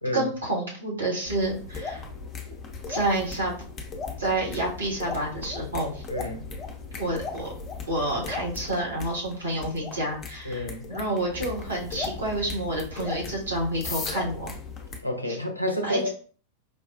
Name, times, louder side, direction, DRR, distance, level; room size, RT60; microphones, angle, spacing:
voice 1, 0.1-2.0 2.9-3.6 4.2-6.0 7.0-7.5 7.9-14.5 15.8-16.1, right 1 dB, 70° right, -3 dB, 1.4 m, -29 dB
sound 1, 1.3-15.0, left 4 dB, 25° left, 0.6 m, -37 dB
voice 2, 6.1-6.4 10.4-10.9 15.0-16.1, left 1 dB, 90° left, 4 dB, 0.5 m, -29 dB
4.7 x 2.3 x 2.4 m, 0.42 s
figure-of-eight pair, 90°, 0 cm